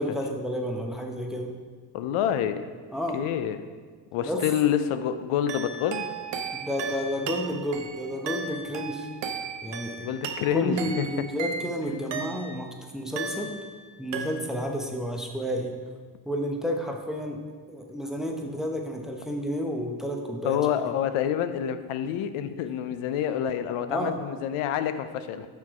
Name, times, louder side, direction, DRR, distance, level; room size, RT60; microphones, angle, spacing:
voice 1, 0.0-1.5 2.9-3.3 4.2-4.4 6.5-9.1 9.6-10.1 10.5-12.7 12.9-13.5 14.0-15.7 16.3-17.4 17.7-20.6 23.9-24.2, equal, ahead, 1 dB, 0.7 m, -31 dB
voice 2, 1.9-2.7 3.1-3.7 4.1-6.1 10.0-11.1 20.4-25.5, left 9 dB, 80° left, 10 dB, 0.5 m, -27 dB
sound 1, 5.5-12.7 13.2-13.8 14.1-14.8, right 5 dB, 60° right, 0.7 m, -36 dB
5.9 x 4.6 x 4.8 m, 1.5 s
cardioid pair, 90°, 49 cm